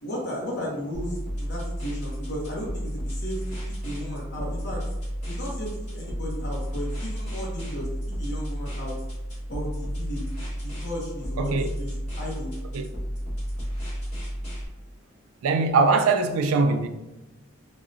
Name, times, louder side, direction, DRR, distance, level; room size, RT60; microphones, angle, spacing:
voice 1, 0.0-3.4 3.8-4.8 5.3-7.9 8.2-8.9 9.5-10.2 10.6-12.5, equal, 55° left, 0.7 m, -35 dB
sound 1, 0.9-14.7, equal, 35° left, 1.3 m, -32 dB
voice 2, 11.4-11.7 12.7-12.9 15.4-16.9, right 4 dB, 80° right, 0.3 m, -21 dB
3.7 x 2.0 x 2.5 m
head